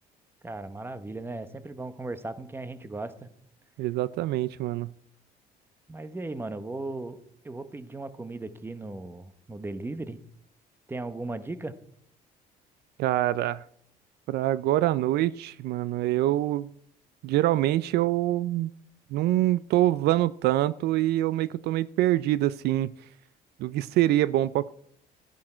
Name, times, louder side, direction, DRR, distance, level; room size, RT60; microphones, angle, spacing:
voice 1, 0.4-3.3 5.9-7.2 7.4-10.2 10.9-11.7, right 2 dB, 15° right, 12 dB, 0.9 m, -37 dB
voice 2, 3.8-4.9 13.0-13.6 14.3-16.7 17.2-18.7 19.1-22.9 23.6-24.7, right 14 dB, 75° right, 18 dB, 0.4 m, -25 dB
13.5 x 10.5 x 4.4 m, 0.67 s
cardioid pair, 110°, 17 cm